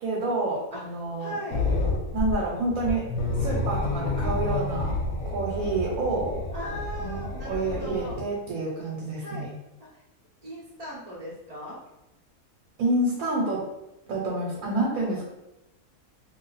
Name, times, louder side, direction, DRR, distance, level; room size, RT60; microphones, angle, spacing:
voice 1, 0.0-1.3 2.1-3.0 3.4-4.9 5.2-6.3 7.0-9.4 12.8-13.6 14.1-15.3, right 2 dB, 75° right, -3 dB, 1.1 m, -28 dB
voice 2, 1.2-1.7 6.5-8.2 9.2-9.5 9.9-10.0 10.4-11.8, equal, 45° right, -7 dB, 0.5 m, -38 dB
sound 1, 1.5-8.2, left 2 dB, 70° left, 1.0 m, -29 dB
2.6 x 2.3 x 3.8 m, 0.93 s
omnidirectional pair, 1.6 m